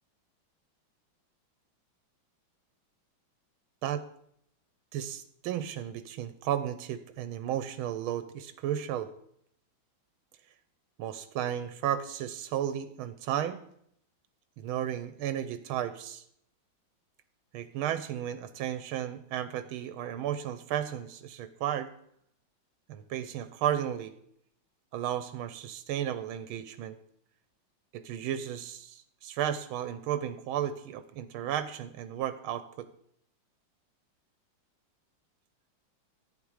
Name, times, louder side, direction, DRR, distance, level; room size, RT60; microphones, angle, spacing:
voice 1, 4.9-9.1 11.0-13.6 14.6-16.2 17.5-21.9 22.9-24.1 24.9-27.0 27.9-32.9, right 10 dB, 90° right, 12 dB, 1.5 m, -34 dB
11.0 x 9.3 x 4.8 m, 0.70 s
omnidirectional pair, 2.2 m